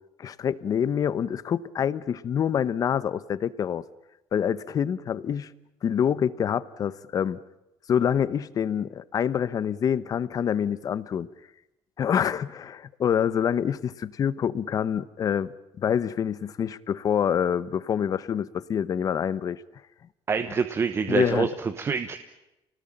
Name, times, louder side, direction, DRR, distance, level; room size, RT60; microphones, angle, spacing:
voice 1, 0.2-3.8 4.3-5.5 5.8-7.4 7.9-11.3 12.0-15.5 15.8-19.6 21.1-21.5, left 8 dB, 35° left, 17 dB, 1.0 m, -26 dB
voice 2, 20.3-22.2, right 5 dB, 25° right, 8 dB, 1.1 m, -26 dB
29.5 x 19.0 x 8.9 m, 0.93 s
cardioid pair, 175°, 10 cm